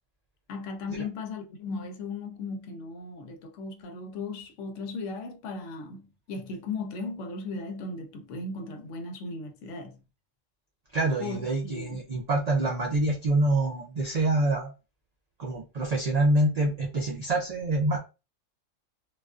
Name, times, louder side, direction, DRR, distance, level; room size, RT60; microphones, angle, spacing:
voice 1, 0.5-10.0 11.2-12.0, left 3 dB, 75° left, 0.9 m, -37 dB
voice 2, 10.9-14.7 15.4-18.0, right 2 dB, 75° right, 0.3 m, -26 dB
2.4 x 2.3 x 2.3 m
omnidirectional pair, 1.3 m